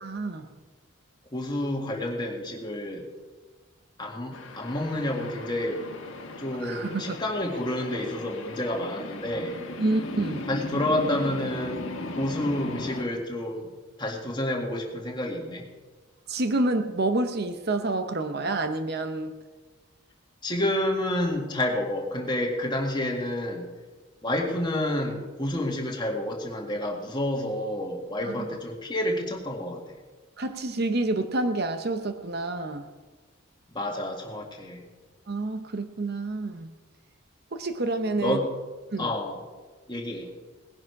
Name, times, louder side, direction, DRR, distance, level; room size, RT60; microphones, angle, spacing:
voice 1, 0.0-0.5 6.6-7.2 9.8-10.5 16.3-19.3 28.2-28.3 30.4-32.9 35.3-36.7 37.5-38.4 38.9-39.1, right 2 dB, 50° right, 8 dB, 0.8 m, -28 dB
voice 2, 1.3-3.0 4.0-5.8 6.4-9.6 10.5-11.8 12.1-13.7 14.0-15.7 20.4-23.7 24.2-30.0 33.7-34.8 38.2-38.5 39.0-39.4 39.9-40.3, left 1 dB, 20° left, 0 dB, 2.0 m, -29 dB
sound 1, 4.3-13.0, left 2 dB, 65° left, 1.5 m, -37 dB
19.0 x 10.5 x 4.7 m, 1.3 s
head